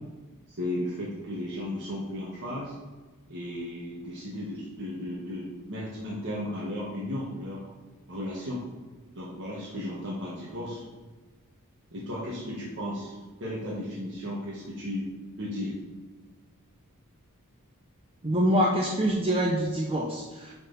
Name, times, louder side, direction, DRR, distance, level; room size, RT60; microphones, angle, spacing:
voice 1, 0.5-2.7 3.3-7.6 8.1-8.6 9.1-10.8 11.9-15.1 15.4-15.7, left 1 dB, 55° right, -7 dB, 1.5 m, -35 dB
voice 2, 18.2-20.5, equal, 25° right, -1 dB, 0.7 m, -25 dB
11.0 x 4.1 x 4.0 m, 1.3 s
head